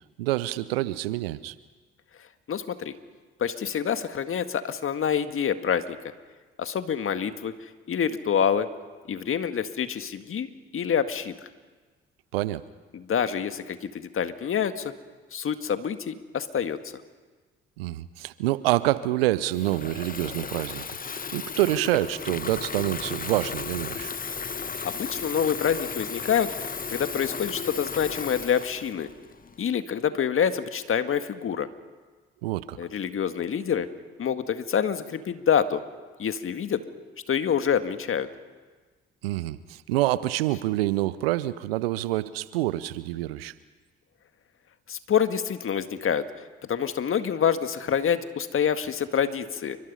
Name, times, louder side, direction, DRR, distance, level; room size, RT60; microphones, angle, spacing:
voice 1, 0.2-1.5 12.3-12.6 17.8-24.1 32.4-32.8 39.2-43.5, right 16 dB, 75° right, 17 dB, 0.8 m, -27 dB
voice 2, 2.5-2.9 3.4-6.0 6.6-7.5 7.9-8.7 9.1-10.5 10.7-11.4 12.9-14.9 15.3-16.8 24.8-29.1 29.6-31.7 32.8-33.9 34.2-35.8 36.2-36.8 37.3-38.3 44.9-46.2 46.7-49.8, left 8 dB, 45° left, 9 dB, 1.9 m, -26 dB
Water tap faucet / Fill (with liquid), 19.5-29.7, left 5 dB, 30° left, 1.3 m, -35 dB
29.5 x 24.5 x 5.6 m, 1.4 s
figure-of-eight pair, 45°, 29 cm